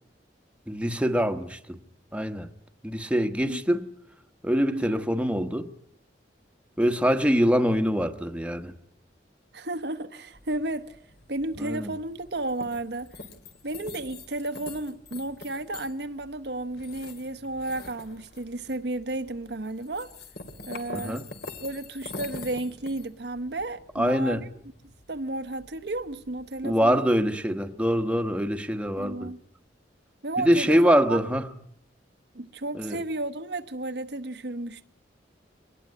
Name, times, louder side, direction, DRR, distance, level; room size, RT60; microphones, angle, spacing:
voice 1, 0.7-1.8 2.1-2.5 2.8-3.9 4.4-5.7 6.8-8.7 11.6-11.9 20.9-21.3 23.9-24.4 26.6-29.3 30.4-31.5 32.8-33.0, equal, 5° right, 1.2 m, -24 dB
voice 2, 4.7-5.0 9.5-11.0 11.3-13.1 13.6-20.1 20.7-21.2 21.6-24.5 25.1-27.1 29.0-29.4 30.2-31.2 32.3-34.9, right 2 dB, 65° right, 1.1 m, -33 dB
sound 1, 10.3-26.8, left 3 dB, 60° left, 2.7 m, -45 dB
24.5 x 19.5 x 9.6 m
head